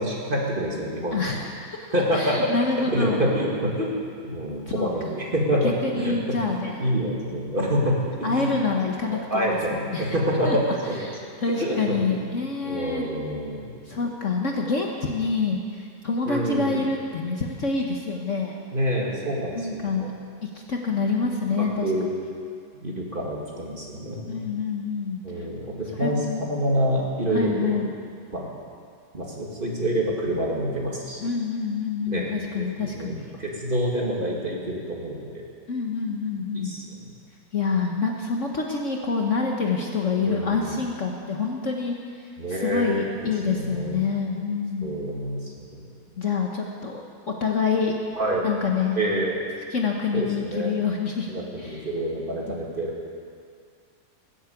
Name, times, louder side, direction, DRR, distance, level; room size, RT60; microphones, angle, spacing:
voice 1, 0.0-1.3 1.9-2.5 2.9-3.9 4.2-6.2 6.5-8.5 9.1-11.0 11.6-12.2 12.6-13.7 16.3-16.8 18.7-19.9 21.6-22.1 22.8-24.4 25.2-27.8 28.3-28.5 29.1-31.2 32.1-32.3 32.6-35.3 36.5-37.1 40.2-40.7 42.4-43.2 43.5-44.0 44.8-45.8 48.2-48.5 48.9-49.4 50.1-50.7 51.3-53.1, equal, 30° right, -3 dB, 2.4 m, -27 dB
voice 2, 1.1-1.8 2.1-3.2 4.7-5.1 5.6-6.8 8.2-10.2 10.4-13.1 13.9-18.5 19.5-20.1 20.4-22.1 24.3-25.5 26.0-26.4 27.3-27.9 31.2-33.3 35.7-36.7 37.5-45.0 46.2-48.0 48.4-49.0 49.7-51.3 51.6-51.9, left 4 dB, 50° left, 0 dB, 1.4 m, -27 dB
20.0 x 8.1 x 8.4 m, 2.2 s
omnidirectional pair, 1.9 m